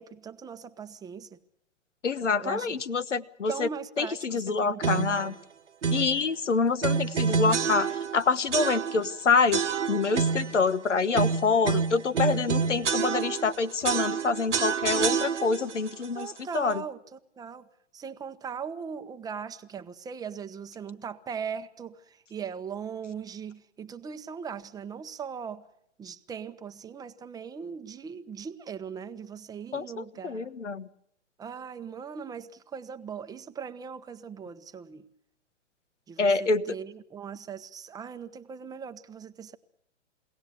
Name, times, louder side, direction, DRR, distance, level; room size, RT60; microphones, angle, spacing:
voice 1, 0.0-1.4 2.4-2.8 3.5-5.3 16.1-17.0 17.4-17.6 17.9-25.6 26.0-30.5 31.4-35.1 36.1-39.6, right 7 dB, 10° right, 10 dB, 0.8 m, -39 dB
voice 2, 2.0-3.7 4.0-5.4 5.9-9.6 9.9-16.8 29.7-30.9 36.2-36.7, left 4 dB, 85° left, 14 dB, 1.1 m, -26 dB
sound 1, 4.8-5.3 5.8-6.2 6.8-8.2 8.5-9.1 9.5-10.6 11.1-13.5 13.8-15.7, right 6 dB, 85° right, 1.0 m, -27 dB
22.5 x 17.5 x 8.2 m, 0.73 s
hypercardioid pair, 120°, 35 cm